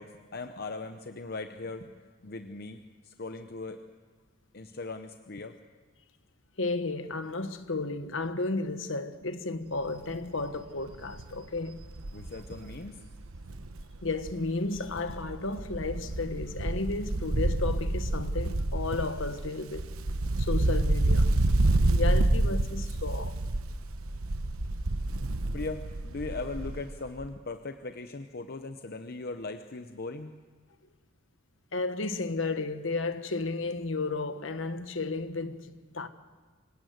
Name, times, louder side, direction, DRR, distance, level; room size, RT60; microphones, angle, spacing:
voice 1, 0.0-1.9 2.2-3.8 4.5-5.6 12.1-13.0 25.5-30.3, left 3 dB, 45° left, 0.8 m, -39 dB
voice 2, 6.6-11.8 14.0-19.9 20.4-21.3 21.8-23.4 31.7-36.1, left 3 dB, 60° left, 1.3 m, -33 dB
Wind, 9.9-10.2 10.5-10.6 10.9-14.5 14.8-26.9 27.2-27.3, right 2 dB, 80° right, 1.0 m, -28 dB
25.5 x 17.5 x 8.0 m
head